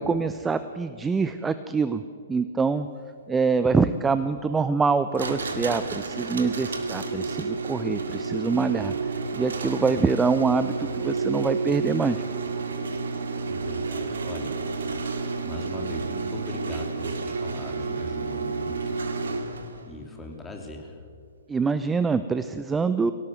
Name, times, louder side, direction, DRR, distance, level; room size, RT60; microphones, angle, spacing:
voice 1, 0.0-2.0 2.3-2.9 3.3-8.9 9.3-12.2 21.5-23.1, right 4 dB, 10° right, 12 dB, 0.6 m, -25 dB
sound 1, 5.1-19.8, right 4 dB, 60° right, 2.2 m, -30 dB
voice 2, 13.5-14.6 15.4-19.0 19.9-21.0, left 2 dB, 10° left, 2 dB, 3.1 m, -40 dB
23.5 x 17.5 x 7.9 m, 2.2 s
figure-of-eight pair, 120°, 0 cm